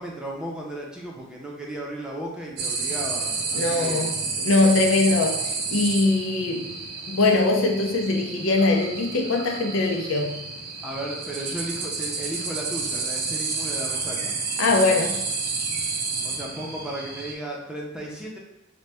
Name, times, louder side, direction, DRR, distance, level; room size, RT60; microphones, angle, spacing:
voice 1, 0.0-4.1 10.8-14.3 16.2-18.4, right 1 dB, 5° right, -3 dB, 0.6 m, -35 dB
sound 1, 2.6-17.3, right 4 dB, 55° right, 0.5 m, -30 dB
voice 2, 3.5-6.8 7.1-10.4 14.6-15.2, left 3 dB, 85° left, 2 dB, 0.6 m, -22 dB
3.9 x 2.2 x 3.3 m, 0.99 s
head